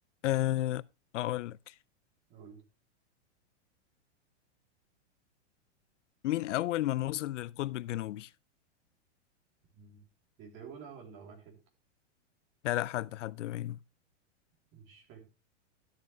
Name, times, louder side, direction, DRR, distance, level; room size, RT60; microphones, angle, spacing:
voice 1, 0.2-0.8 1.1-1.7 6.2-8.3 12.6-13.8, left 15 dB, 80° left, 0.5 m, -32 dB
voice 2, 2.3-2.6 9.7-10.0 10.4-11.6 14.7-15.2, right 6 dB, 30° right, 3.3 m, -50 dB
12.5 x 7.3 x 3.3 m
hypercardioid pair, 145°, 36 cm